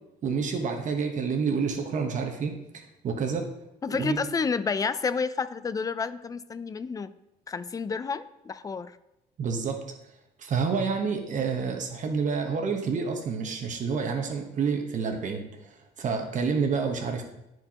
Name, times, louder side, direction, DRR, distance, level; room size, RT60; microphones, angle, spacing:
voice 1, 0.2-3.4 3.9-4.2 9.4-9.8 10.4-17.2, right 5 dB, 50° right, 3 dB, 1.1 m, -29 dB
voice 2, 3.8-7.1 7.5-8.9, left 5 dB, 20° left, 14 dB, 0.4 m, -30 dB
12.5 x 4.5 x 2.9 m, 0.88 s
cardioid pair, 110°, 17 cm